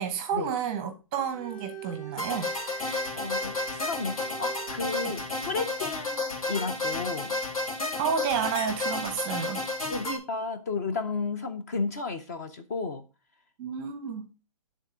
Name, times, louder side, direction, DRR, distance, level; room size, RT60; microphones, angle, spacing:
voice 1, 0.0-2.5 5.0-5.2 8.0-9.7 13.6-14.3, right 7 dB, 15° right, 0.7 m, -31 dB
Bowed string instrument, 1.1-5.6, right 7 dB, 5° left, 1.9 m, -45 dB
sound 1, 2.2-10.2, left 2 dB, 90° left, 2.4 m, -32 dB
voice 2, 3.1-7.4 9.9-13.0, left 4 dB, 30° left, 0.6 m, -33 dB
10.0 x 3.7 x 5.0 m
hypercardioid pair, 170°, 18 cm